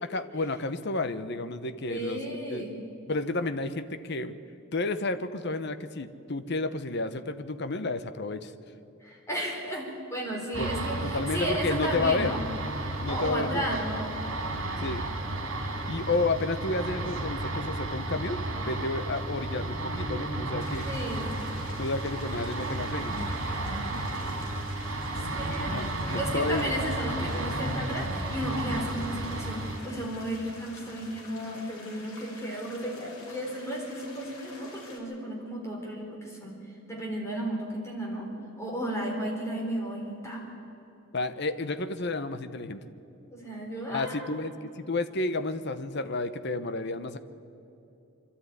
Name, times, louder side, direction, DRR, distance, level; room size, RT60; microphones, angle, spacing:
voice 1, 0.0-2.2 2.5-2.7 3.1-4.3 4.7-8.5 10.6-10.7 11.0-12.3 13.0-13.7 14.8-15.0 15.9-20.9 21.7-23.1 25.7-26.7 41.1-42.8 43.9-47.2, left 2 dB, 50° left, 11 dB, 0.9 m, -31 dB
voice 2, 1.9-2.8 9.0-12.4 13.1-14.1 20.8-21.3 25.1-25.9 26.1-36.6 36.9-38.3 38.6-40.4 43.3-44.3, right 1 dB, 15° left, -2 dB, 4.1 m, -34 dB
sound 1, 10.5-29.8, right 2 dB, 60° right, 3.4 m, -33 dB
sound 2, 20.6-35.0, left 2 dB, 85° left, 4.1 m, -49 dB
25.0 x 12.5 x 9.6 m, 2.8 s
head